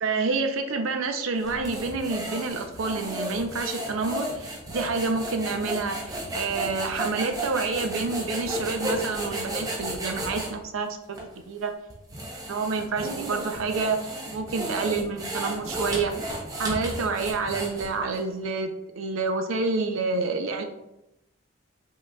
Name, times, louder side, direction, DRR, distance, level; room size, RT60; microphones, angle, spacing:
voice 1, 0.0-11.2 11.5-11.7 12.5-20.6, right 4 dB, 75° right, 5 dB, 0.5 m, -28 dB
sound 1, 1.4-10.5 11.1-11.3 11.9-18.2, right 1 dB, 15° right, 0.6 m, -33 dB
5.2 x 3.7 x 2.2 m, 0.90 s
head